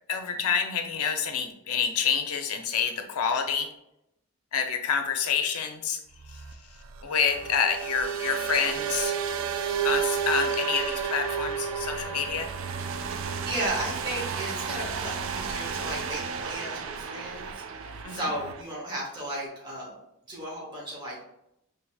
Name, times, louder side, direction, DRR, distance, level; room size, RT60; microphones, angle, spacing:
voice 1, 0.1-3.7 4.5-6.0 6.3-6.4 7.0-9.1 9.8-12.5 18.0-18.3, left 7 dB, 85° left, 5 dB, 0.6 m, -28 dB
sound 1, 6.2-18.6, right 7 dB, 60° right, 0.3 m, -32 dB
voice 2, 13.4-19.9 20.3-21.2, right 1 dB, 20° right, -4 dB, 0.9 m, -35 dB
4.6 x 3.3 x 2.3 m, 0.81 s
head